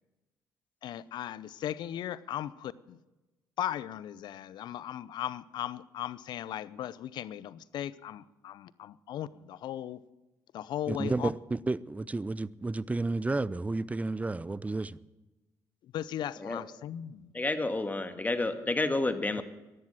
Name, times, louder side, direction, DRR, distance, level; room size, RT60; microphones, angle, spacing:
voice 1, 0.8-3.0 3.6-10.0 10.5-11.3 15.9-17.3, left 11 dB, 70° left, 0.6 m, -37 dB
voice 2, 10.9-15.0, right 2 dB, 20° right, 0.6 m, -31 dB
voice 3, 17.3-19.4, left 2 dB, 20° left, 1.8 m, -30 dB
13.5 x 11.5 x 7.9 m
supercardioid pair, 60°, 8 cm